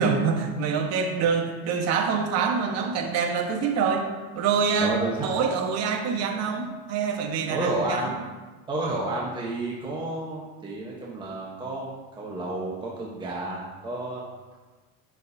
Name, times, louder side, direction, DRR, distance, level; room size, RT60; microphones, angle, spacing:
voice 1, 0.0-4.1 4.3-4.9 5.2-8.1, right 5 dB, 50° right, 2 dB, 1.3 m, -25 dB
voice 2, 4.8-5.3 7.5-8.1 8.7-14.2, right 2 dB, 15° right, -4 dB, 1.1 m, -31 dB
9.5 x 6.3 x 2.8 m, 1.3 s
supercardioid pair, 135°, 32 cm